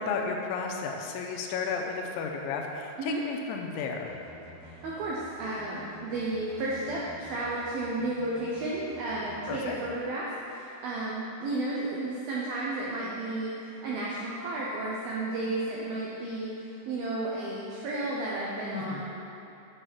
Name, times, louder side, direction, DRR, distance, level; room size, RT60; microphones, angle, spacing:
voice 1, 0.0-4.1 9.5-9.8 18.7-19.1, left 5 dB, 85° left, 1 dB, 2.9 m, -33 dB
sound 1, 4.1-10.0, left 1 dB, 65° left, 1.6 m, -50 dB
voice 2, 4.6-19.1, right 2 dB, 80° right, -5 dB, 2.1 m, -33 dB
8.0 x 6.9 x 6.0 m, 2.8 s
omnidirectional pair, 5.5 m